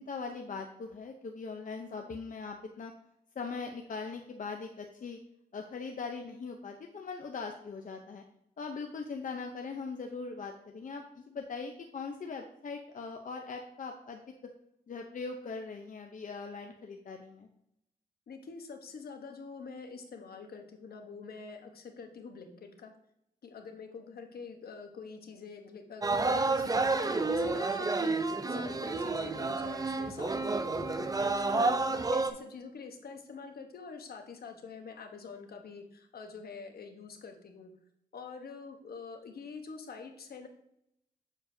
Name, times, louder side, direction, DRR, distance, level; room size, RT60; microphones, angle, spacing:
voice 1, 0.0-2.9 3.4-5.2 5.5-8.2 8.6-14.2 14.9-17.5 31.5-31.7, left 4 dB, 55° left, 3 dB, 0.7 m, -40 dB
voice 2, 18.3-22.9 23.4-37.7 38.1-40.5, left 5 dB, 75° left, 5 dB, 1.1 m, -46 dB
sound 1, 26.0-32.3, right 3 dB, 25° right, 0.6 m, -30 dB
7.3 x 6.5 x 2.7 m, 0.77 s
cardioid pair, 70°, 16 cm